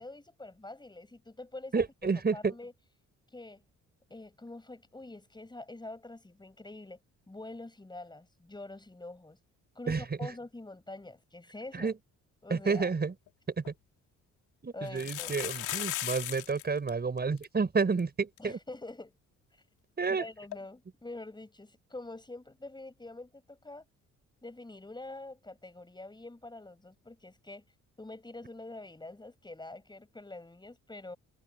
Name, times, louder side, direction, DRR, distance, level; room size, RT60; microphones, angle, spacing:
voice 1, 0.0-1.8 2.1-2.7 3.3-3.6 4.1-7.0 7.3-9.4 9.7-11.9 12.4-12.9 14.7-15.3 18.4-19.1 20.1-23.8 24.4-27.6 28.0-31.2, left 2 dB, 15° left, 6.3 m, -45 dB
voice 2, 1.7-2.5 9.9-10.0 11.7-11.9 12.5-13.1 13.6-13.7 14.6-18.6 20.0-20.2, right 4 dB, 30° right, 6.0 m, -30 dB
sound 1, 13.3-13.4 13.6-13.7 14.9-16.6 16.9-17.0 17.2-17.4 18.0-18.1 18.4-18.5 20.5-20.6, left 14 dB, 90° left, 3.1 m, -36 dB
cardioid pair, 90°, 30 cm